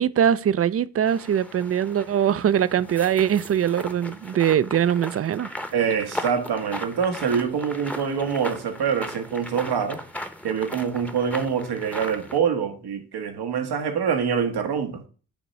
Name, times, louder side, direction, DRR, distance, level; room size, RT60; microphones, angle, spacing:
voice 1, 0.0-5.5, right 9 dB, 40° right, 0.4 m, -22 dB
sound 1, 1.1-12.4, equal, 5° left, 0.8 m, -37 dB
voice 2, 5.7-10.0 10.4-15.0, right 7 dB, 85° right, 1.1 m, -25 dB
7.0 x 3.0 x 5.4 m
cardioid pair, 60°, 38 cm